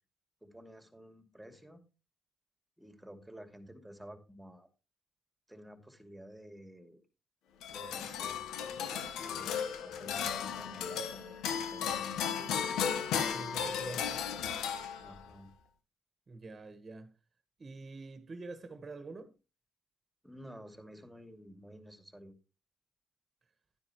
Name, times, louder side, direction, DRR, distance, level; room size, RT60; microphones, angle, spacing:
voice 1, 0.4-1.8 2.8-4.7 5.5-7.0 7.7-12.6 15.0-15.5 20.2-22.3, equal, 5° right, 2.6 m, -52 dB
sound 1, 7.6-15.3, left 7 dB, 85° left, 1.3 m, -35 dB
voice 2, 13.3-14.3 16.3-17.1 17.6-19.3, right 3 dB, 35° right, 1.5 m, -46 dB
12.0 x 9.7 x 3.1 m
cardioid pair, 90°, 0 cm